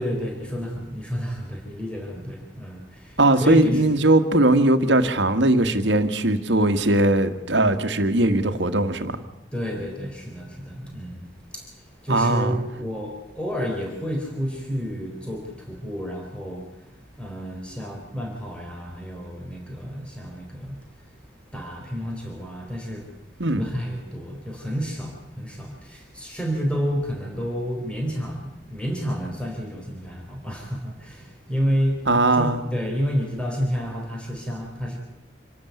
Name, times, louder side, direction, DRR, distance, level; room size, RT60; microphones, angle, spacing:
voice 1, 0.0-4.1 9.5-21.2 21.5-23.1 23.5-35.0, equal, 5° left, 0 dB, 4.1 m, -30 dB
voice 2, 3.2-9.2 12.1-12.6 23.4-23.6 32.1-32.7, right 2 dB, 80° right, 8 dB, 1.7 m, -20 dB
27.0 x 12.5 x 9.5 m, 0.98 s
head